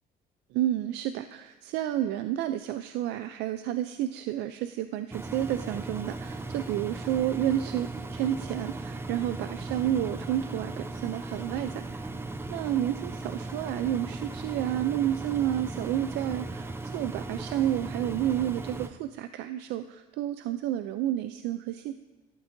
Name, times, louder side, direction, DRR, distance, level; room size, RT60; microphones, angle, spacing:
voice 1, 0.5-12.1 12.5-21.9, right 12 dB, 85° right, 10 dB, 0.4 m, -30 dB
Engine, 5.1-18.9, right 2 dB, 15° right, 0.5 m, -37 dB
12.5 x 12.0 x 2.6 m, 1.2 s
cardioid pair, 110°, 17 cm